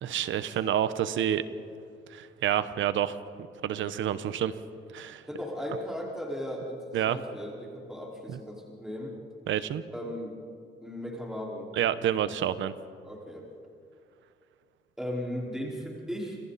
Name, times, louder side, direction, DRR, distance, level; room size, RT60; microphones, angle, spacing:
voice 1, 0.0-1.4 2.1-3.2 3.6-4.5 4.9-5.2 6.9-7.2 8.3-8.4 9.5-9.8 11.8-12.7, right 10 dB, 75° right, 13 dB, 1.1 m, -28 dB
voice 2, 5.3-9.1 9.9-10.4 10.8-11.7 13.0-13.5 15.0-16.4, equal, 5° right, -3 dB, 4.9 m, -37 dB
29.0 x 27.5 x 4.3 m, 2.4 s
cardioid pair, 90°, 20 cm